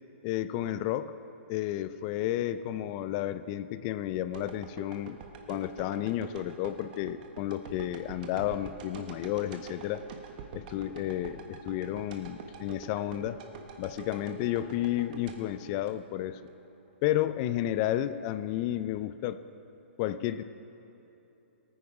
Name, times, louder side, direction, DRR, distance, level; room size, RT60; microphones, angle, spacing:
voice 1, 0.2-1.2 1.5-5.2 5.5-10.0 10.5-13.4 13.8-16.4 17.0-19.4 20.0-20.4, left 13 dB, 30° left, 13 dB, 0.4 m, -32 dB
sound 1, 4.3-16.5 16.9-17.0, right 6 dB, 40° right, 1.3 m, -46 dB
18.0 x 9.5 x 4.9 m, 3.0 s
hypercardioid pair, 150°, 7 cm